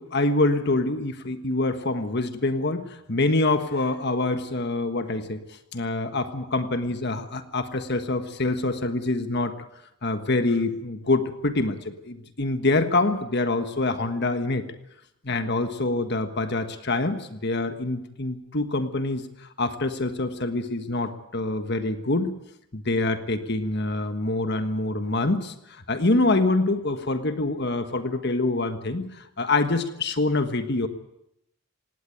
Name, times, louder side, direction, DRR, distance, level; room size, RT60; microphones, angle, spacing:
voice 1, 0.0-9.6 10.0-14.6 15.2-22.4 22.7-30.9, left 2 dB, 50° left, 9 dB, 1.5 m, -25 dB
18.5 x 17.5 x 9.2 m, 0.79 s
head